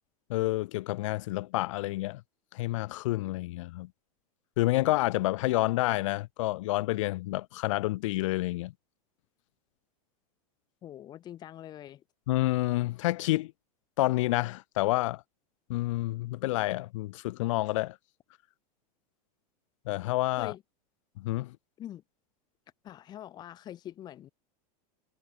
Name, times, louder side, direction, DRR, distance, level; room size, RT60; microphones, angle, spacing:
voice 1, 0.3-2.2 2.5-3.9 4.6-8.7 12.3-13.5 14.0-15.2 15.7-18.0 19.8-20.5 21.2-21.6, left 18 dB, 55° left, 6.2 m, -29 dB
voice 2, 10.8-12.0 20.4-20.6 21.8-22.0 22.8-24.3, left 11 dB, 20° left, 3.9 m, -44 dB
supercardioid pair, 175°, 19 cm